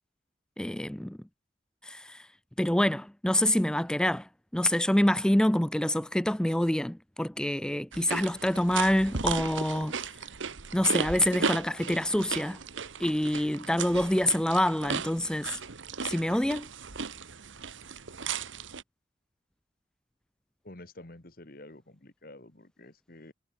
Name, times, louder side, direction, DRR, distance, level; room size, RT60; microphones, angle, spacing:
voice 1, 0.6-1.2 1.9-2.2 2.6-4.2 4.5-9.9 10.7-12.6 13.0-15.6 16.0-16.7, left 1 dB, 5° left, 0.3 m, -26 dB
sound 1, 7.9-18.8, right 5 dB, 80° right, 1.4 m, -36 dB
voice 2, 20.6-23.3, left 1 dB, 50° left, 1.7 m, -49 dB
head